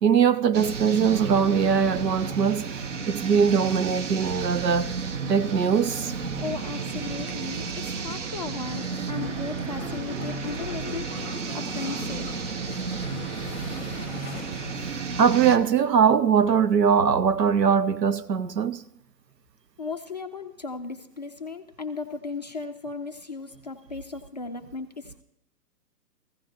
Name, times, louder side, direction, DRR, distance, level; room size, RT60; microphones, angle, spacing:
voice 1, 0.0-2.8 3.1-4.9 5.3-6.1 15.2-18.8, right 7 dB, 80° right, 0.9 m, -21 dB
sound 1, 0.5-15.6, right 5 dB, 45° right, 1.0 m, -32 dB
voice 2, 6.4-11.1 11.5-12.3 19.8-25.2, left 4 dB, 30° left, 0.4 m, -36 dB
sound 2, 8.6-14.9, left 5 dB, 10° left, 0.9 m, -42 dB
15.5 x 15.5 x 2.6 m
hypercardioid pair, 135°, 49 cm